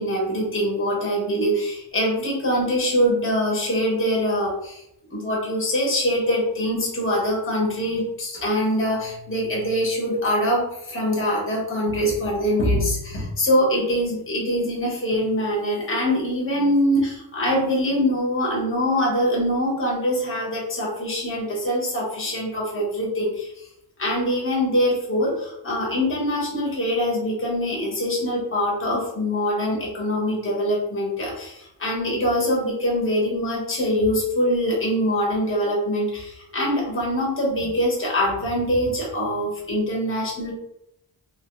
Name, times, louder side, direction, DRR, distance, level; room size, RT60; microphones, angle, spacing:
voice 1, 0.0-4.8 5.1-23.7 24.0-40.5, equal, 30° left, -3 dB, 1.0 m, -23 dB
3.1 x 2.2 x 3.0 m, 0.79 s
wide cardioid pair, 115°, 42 cm